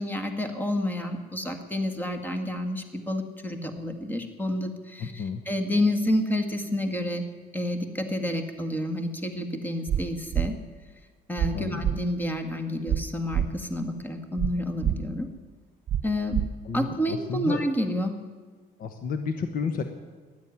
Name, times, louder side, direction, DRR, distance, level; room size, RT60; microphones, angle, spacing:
voice 1, 0.0-7.2 7.5-10.5 11.3-15.3 16.0-16.4 16.7-18.2, left 1 dB, 10° left, 6 dB, 1.8 m, -29 dB
voice 2, 5.0-5.4 11.5-11.8 16.6-17.6 18.8-19.8, left 5 dB, 55° left, 8 dB, 1.2 m, -31 dB
sound 1, 9.9-10.0 10.3-10.5 11.4-11.5 11.8-12.0 12.9-13.0 13.3-13.5 14.4-14.5 14.8-15.0 15.9-16.0 16.3-16.5, right 10 dB, 45° right, 0.8 m, -25 dB
13.0 x 10.5 x 9.6 m, 1.5 s
cardioid pair, 110°, 17 cm